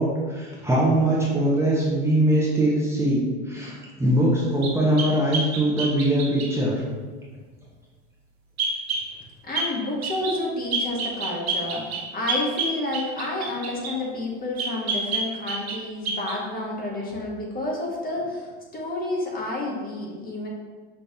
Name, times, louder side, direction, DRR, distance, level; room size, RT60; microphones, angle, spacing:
voice 1, 0.0-6.8, right 1 dB, 10° right, -6 dB, 0.9 m, -22 dB
sound 1, 4.6-6.5 8.6-9.1 9.5-9.7 10.0-10.4 10.7-14.0 14.6-15.8 16.0-16.4, right 3 dB, 90° right, 1.0 m, -28 dB
voice 2, 9.4-20.5, left 2 dB, 30° left, -3 dB, 1.2 m, -30 dB
5.5 x 3.1 x 2.8 m, 1.5 s
hypercardioid pair, 95°, 31 cm